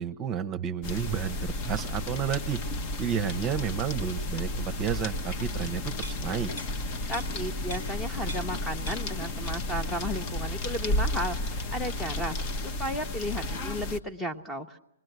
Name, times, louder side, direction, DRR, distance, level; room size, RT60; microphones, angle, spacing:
voice 1, 0.0-2.6 3.0-6.5, right 8 dB, 25° right, 8 dB, 0.9 m, -31 dB
sound 1, 0.8-14.0, left 1 dB, 35° left, 1.0 m, -32 dB
sound 2, 6.0-8.6 8.9-9.8 10.1-10.3, equal, 70° left, 2.8 m, -44 dB
voice 2, 7.1-14.8, equal, 5° left, 8 dB, 1.0 m, -34 dB
25.5 x 21.0 x 8.0 m, 0.82 s
hypercardioid pair, 130°, 0 cm